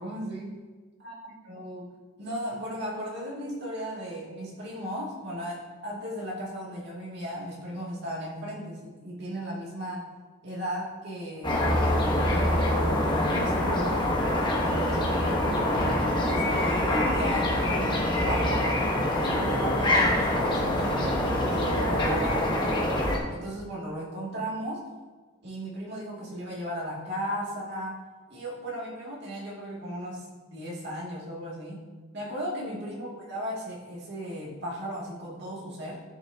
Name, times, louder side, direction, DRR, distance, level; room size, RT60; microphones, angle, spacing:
voice 1, 0.0-0.5 1.0-10.1 10.4-14.0 14.6-15.7 16.2-18.8 19.1-22.9 23.3-24.8 25.4-28.0 28.3-31.8 32.1-36.0, equal, 50° right, -4 dB, 2.4 m, -36 dB
sound 1, 11.4-23.2, left 1 dB, 20° left, 1.2 m, -25 dB
13.5 x 6.1 x 2.9 m, 1.4 s
head